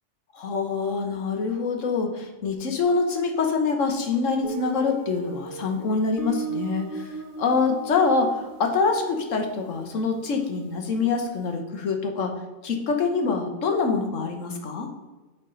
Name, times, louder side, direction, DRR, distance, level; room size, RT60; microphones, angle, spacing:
voice 1, 0.3-14.9, left 4 dB, 70° left, 4 dB, 1.3 m, -25 dB
Guitar, 4.4-11.1, right 5 dB, 80° right, 1.3 m, -38 dB
6.6 x 4.5 x 5.4 m, 1.2 s
omnidirectional pair, 1.4 m